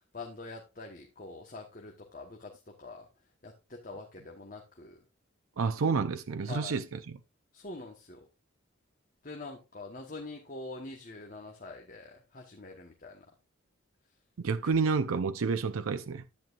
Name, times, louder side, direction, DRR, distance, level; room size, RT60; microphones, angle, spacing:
voice 1, 0.1-3.1 3.4-5.0 6.5-6.7 7.5-8.3 9.2-13.2, left 3 dB, 40° left, 1.3 m, -45 dB
voice 2, 5.6-7.2 14.4-16.3, right 5 dB, 85° right, 0.5 m, -29 dB
10.5 x 9.2 x 2.5 m
head